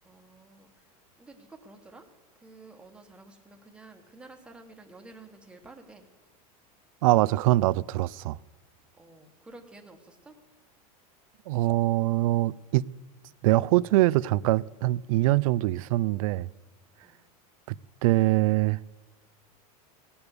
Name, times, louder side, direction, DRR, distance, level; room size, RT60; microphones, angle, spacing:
voice 1, 0.0-2.1 2.3-6.1 8.9-10.4 17.0-17.2, right 2 dB, 5° right, 1.1 m, -51 dB
voice 2, 7.0-8.4 11.5-12.8 13.4-16.5 17.7-17.8 18.0-18.8, right 17 dB, 65° right, 0.4 m, -23 dB
17.5 x 7.0 x 9.7 m
supercardioid pair, 170°, 19 cm